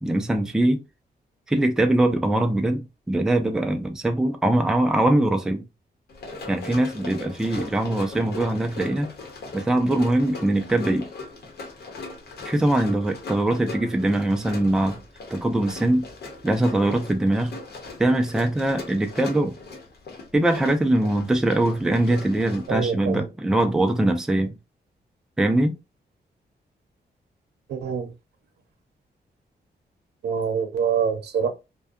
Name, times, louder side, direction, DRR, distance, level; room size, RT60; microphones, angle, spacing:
voice 1, 0.0-0.8 1.5-5.6 6.5-9.1 9.5-11.1 12.4-15.0 15.3-16.0 16.4-17.6 18.0-19.5 20.3-24.6 25.4-25.8, right 1 dB, 5° right, 0.3 m, -22 dB
Run, 6.1-22.8, left 3 dB, 75° left, 0.8 m, -39 dB
voice 2, 22.7-23.3 27.7-28.1 30.2-31.5, right 7 dB, 90° right, 0.6 m, -25 dB
2.6 x 2.2 x 2.3 m
wide cardioid pair, 155°, 17 cm